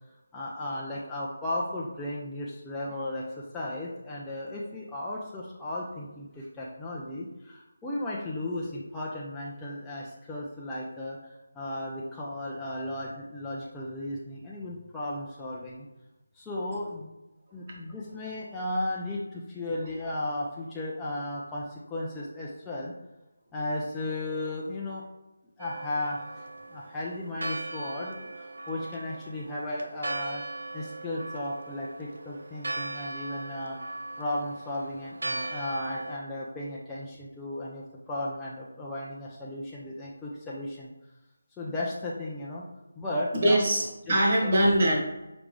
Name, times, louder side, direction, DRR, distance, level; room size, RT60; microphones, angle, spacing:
voice 1, 0.3-15.9 16.4-17.1 17.5-22.9 23.5-25.0 25.6-30.4 30.7-33.8 34.2-40.9 41.6-42.6 43.0-43.6 44.1-44.2 44.4-44.5, left 1 dB, 10° left, -7 dB, 0.5 m, -35 dB
Church bell, 25.6-36.2, right 2 dB, 80° right, 0.4 m, -39 dB
voice 2, 43.4-45.0, right 1 dB, 40° right, -2 dB, 1.3 m, -22 dB
5.0 x 3.3 x 3.1 m, 0.99 s
figure-of-eight pair, 165°, 0 cm